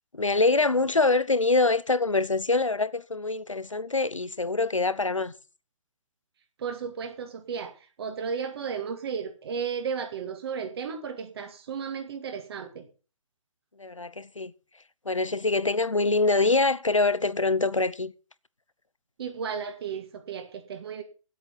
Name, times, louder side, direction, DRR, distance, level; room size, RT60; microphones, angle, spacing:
voice 1, 0.1-5.3 13.8-14.5 15.0-18.1, left 3 dB, 90° left, 0.9 m, -24 dB
voice 2, 6.6-7.7 8.0-12.9 19.2-21.0, right 6 dB, 50° right, 2.5 m, -34 dB
9.7 x 8.2 x 7.5 m
figure-of-eight pair, 130°, 16 cm